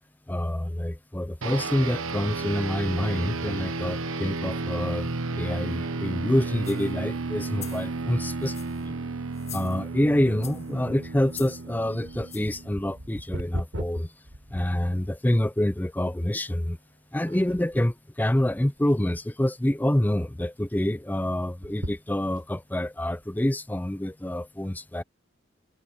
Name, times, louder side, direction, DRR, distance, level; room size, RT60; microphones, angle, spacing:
voice 1, 0.3-8.9 9.5-14.1 14.5-16.8 17.1-25.0, left 1 dB, 10° left, 0.5 m, -27 dB
sound 1, 1.4-13.1, right 3 dB, 90° right, 1.2 m, -33 dB
sound 2, 6.6-6.9 7.4-7.9 8.4-8.9 9.3-10.0 10.4-10.7 11.3-11.6 12.3-12.6 13.2-13.3, left 11 dB, 35° left, 7.4 m, -43 dB
sound 3, 10.9-15.3 15.9-16.0 16.7-17.0 17.3-17.9 18.5-19.2 19.5-19.6 19.9-20.0 21.5-22.6 23.2-23.3, equal, 75° right, 4.8 m, -39 dB
head